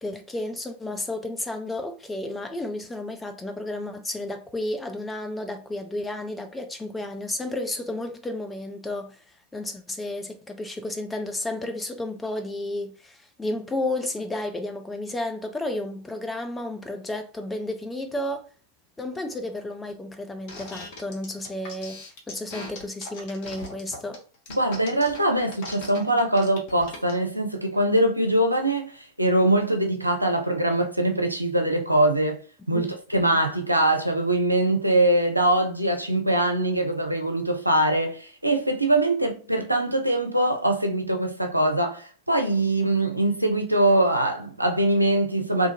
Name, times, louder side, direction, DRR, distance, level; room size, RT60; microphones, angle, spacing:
voice 1, 0.0-9.2 9.5-18.4 19.0-24.2 32.7-32.9, left 1 dB, 10° left, 0.6 m, -32 dB
sound 1, 20.5-27.2, left 3 dB, 45° left, 1.1 m, -40 dB
voice 2, 24.5-32.4 32.7-45.7, right 1 dB, 85° right, 0.5 m, -22 dB
2.7 x 2.4 x 2.7 m
figure-of-eight pair, 90°, 0 cm